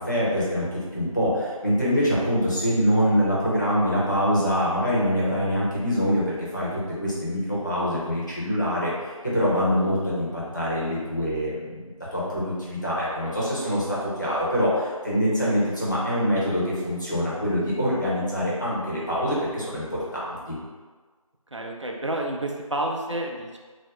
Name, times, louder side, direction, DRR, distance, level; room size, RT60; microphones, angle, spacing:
voice 1, 0.0-8.9 9.2-20.5, equal, 30° left, -8 dB, 0.8 m, -25 dB
voice 2, 21.5-23.6, right 1 dB, 55° right, 0 dB, 0.5 m, -29 dB
3.4 x 2.1 x 3.3 m, 1.4 s
figure-of-eight pair, 175°, 18 cm